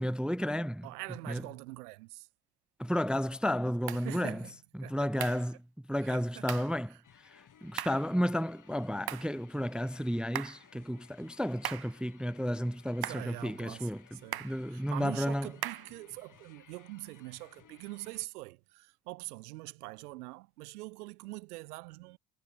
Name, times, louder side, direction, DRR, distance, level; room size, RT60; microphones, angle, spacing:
voice 1, 0.0-0.9 1.3-1.4 2.8-4.4 4.8-5.6 5.9-7.0 7.3-15.5, equal, ahead, 0.5 m, -32 dB
voice 2, 0.8-2.3 3.9-5.3 6.0-6.4 6.9-7.0 13.0-22.2, right 22 dB, 80° right, 4.5 m, -44 dB
sound 1, 3.9-4.1 5.2-5.5 6.5-6.7 7.8-8.1 9.1-9.3 10.3-10.7 11.6-12.0 13.0-13.3 14.3-14.6 15.6-15.9, right 12 dB, 55° right, 2.8 m, -38 dB
sound 2, 7.0-18.3, left 8 dB, 45° left, 4.2 m, -60 dB
hypercardioid pair, 60°, 44 cm